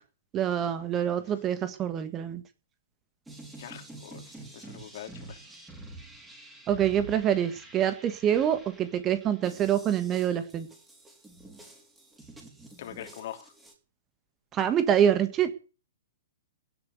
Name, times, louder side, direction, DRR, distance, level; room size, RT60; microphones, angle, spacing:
voice 1, 0.3-2.4 6.7-10.7 14.5-15.5, right 9 dB, 25° right, 11 dB, 1.6 m, -26 dB
sound 1, 3.3-13.7, right 2 dB, 10° right, 5.2 m, -48 dB
voice 2, 3.6-5.4 12.8-13.5, left 11 dB, 50° left, 6 dB, 3.2 m, -43 dB
17.5 x 7.1 x 8.0 m, 0.35 s
figure-of-eight pair, 115°, 0 cm